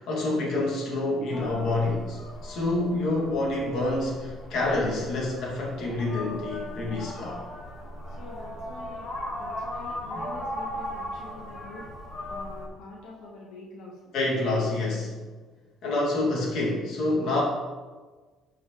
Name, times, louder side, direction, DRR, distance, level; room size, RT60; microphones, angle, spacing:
voice 1, 0.0-7.4 10.1-10.3 14.1-15.2 15.8-17.4, left 2 dB, 60° left, -3 dB, 2.3 m, -27 dB
sound 1, 1.3-12.7, equal, 40° left, 1.8 m, -38 dB
voice 2, 8.0-9.1 9.4-11.9 12.3-14.0, left 2 dB, 80° left, -3 dB, 1.2 m, -45 dB
11.0 x 4.7 x 3.2 m, 1.4 s
cardioid pair, 150°, 0 cm